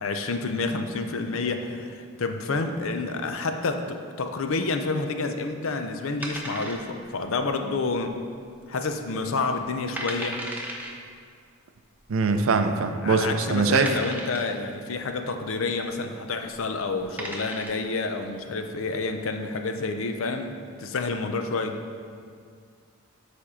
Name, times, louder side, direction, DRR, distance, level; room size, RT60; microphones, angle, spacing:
voice 1, 0.0-8.2 8.7-10.4 13.0-21.8, left 3 dB, 60° left, 6 dB, 0.5 m, -29 dB
sound 1, 6.2-7.2 7.4-7.5 8.2-8.6 8.9-9.0 9.6-9.7 10.0-10.9 12.0-12.1 12.8-12.9 13.8-14.6 16.4-16.6 17.0-17.9, right 1 dB, 10° right, 0.6 m, -35 dB
voice 2, 12.1-14.0, right 4 dB, 60° right, 8 dB, 0.4 m, -22 dB
7.1 x 4.4 x 4.9 m, 2.2 s
head